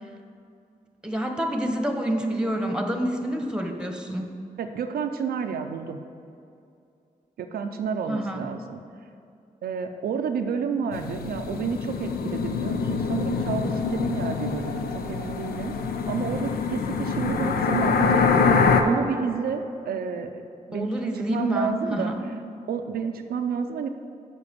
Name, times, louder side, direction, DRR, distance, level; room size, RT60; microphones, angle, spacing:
voice 1, 1.0-4.3 8.1-8.4 20.7-22.2, right 1 dB, 5° right, 4 dB, 1.1 m, -27 dB
voice 2, 4.6-6.0 7.4-8.8 9.6-15.7 16.1-18.3 18.8-20.4 20.7-22.1 22.7-23.9, right 6 dB, 90° right, 6 dB, 0.4 m, -30 dB
sound 1, 10.9-18.8, left 5 dB, 90° left, 0.5 m, -25 dB
7.0 x 5.0 x 6.8 m, 2.5 s
cardioid pair, 45°, 15 cm